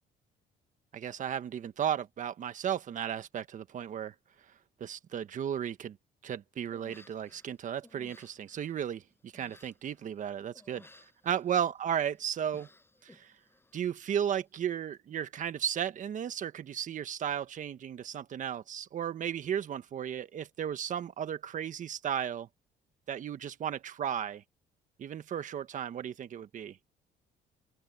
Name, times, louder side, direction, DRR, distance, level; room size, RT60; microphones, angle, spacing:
voice 1, 0.9-4.1 4.8-6.0 6.2-10.9 11.2-12.7 13.0-13.3 13.7-22.5 23.1-24.4 25.0-26.8, right 9 dB, 50° right, 1.5 m, -34 dB
Human voice, 6.7-7.5 7.8-10.2 10.5-11.8 12.2-14.0 14.2-14.6, left 2 dB, 15° left, 7.9 m, -59 dB
open air
cardioid pair, 110°, 17 cm